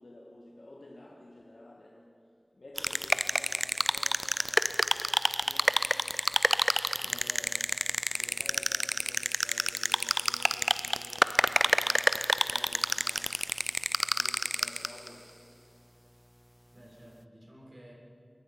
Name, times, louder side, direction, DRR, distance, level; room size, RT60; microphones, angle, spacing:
voice 1, 0.0-5.9 6.9-7.7 8.2-13.7 14.0-15.4, left 1 dB, 90° left, -1 dB, 1.9 m, -52 dB
sound 1, 2.8-15.1, equal, ahead, 0.4 m, -29 dB
voice 2, 7.0-7.4 16.7-17.9, equal, 50° right, -2 dB, 6.3 m, -53 dB
26.5 x 21.5 x 5.8 m, 2.5 s
wide cardioid pair, 50°, 0 cm